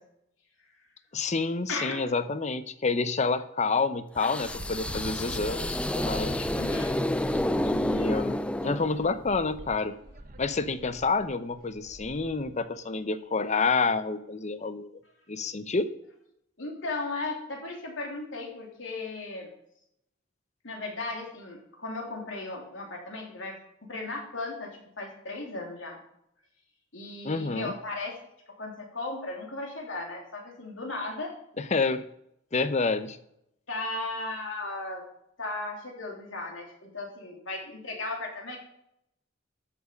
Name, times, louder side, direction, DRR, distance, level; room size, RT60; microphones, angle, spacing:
voice 1, 1.1-6.5 7.6-9.9 10.4-14.9 15.3-15.9 27.2-27.7 31.6-32.0 32.5-33.2, left 4 dB, 35° left, 12 dB, 0.7 m, -28 dB
sound 1, 4.2-9.3, left 1 dB, 5° left, 0.4 m, -30 dB
Wind, 4.4-12.5, right 1 dB, 45° right, 1.3 m, -42 dB
voice 2, 6.5-6.9 16.6-19.5 20.6-26.0 26.9-28.2 28.6-31.3 33.7-35.0 35.4-38.6, left 2 dB, 75° left, 0 dB, 3.3 m, -36 dB
13.0 x 7.3 x 5.2 m, 0.77 s
head